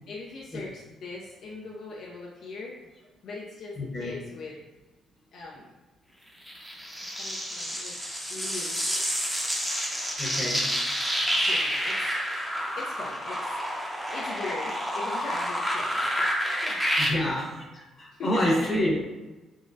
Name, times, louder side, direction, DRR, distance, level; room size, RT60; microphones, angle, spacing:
voice 1, 0.1-2.7 3.2-4.6 5.3-5.8 7.0-8.0 8.3-8.9 10.3-10.7 11.3-12.1 12.8-13.7 14.1-16.3 16.6-16.8 17.1-17.5 18.1-18.7, left 3 dB, 70° left, -3 dB, 0.4 m, -40 dB
voice 2, 3.8-4.2 8.9-9.0 10.2-10.6 17.0-18.9, left 1 dB, 35° left, -3 dB, 0.9 m, -28 dB
sound 1, 6.5-17.1, equal, 5° right, 0.6 m, -29 dB
3.6 x 2.0 x 2.5 m, 1.1 s
cardioid pair, 90°, 0 cm